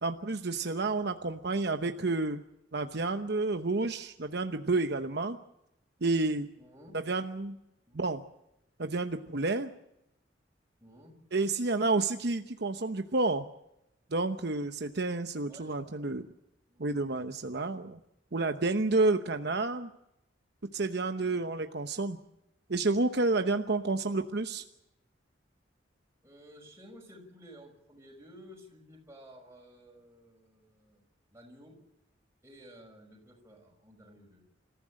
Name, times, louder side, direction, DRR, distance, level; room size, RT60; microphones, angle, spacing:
voice 1, 0.0-2.4 2.7-5.4 6.0-6.5 7.1-7.6 7.9-8.2 8.8-9.7 11.3-13.5 14.1-16.2 16.8-18.0 18.3-19.9 20.7-22.2 22.7-24.6, right 3 dB, 60° right, 7 dB, 0.9 m, -30 dB
voice 2, 6.6-7.0 7.9-8.0 10.8-11.1 15.5-16.1 16.7-16.9 17.5-17.8 26.2-31.0 31.3-31.8 32.4-34.4, equal, 15° right, 0 dB, 6.0 m, -54 dB
28.0 x 15.0 x 7.7 m, 0.86 s
head